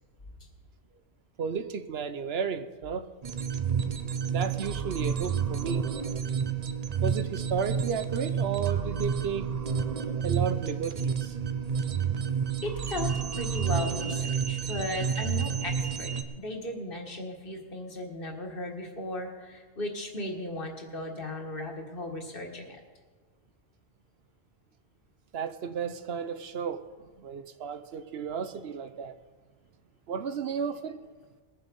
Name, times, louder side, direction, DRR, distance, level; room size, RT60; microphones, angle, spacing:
voice 1, 1.4-3.1 4.3-5.8 7.0-9.5 10.2-11.3 25.3-26.8 27.2-29.1 30.1-31.0, right 6 dB, 80° right, 11 dB, 1.0 m, -33 dB
sound 1, 3.2-16.2, right 7 dB, 45° right, 0.7 m, -30 dB
voice 2, 12.6-16.1 16.4-22.8, left 2 dB, 60° left, 2 dB, 1.8 m, -36 dB
20.5 x 7.0 x 5.3 m, 1.4 s
omnidirectional pair, 1.0 m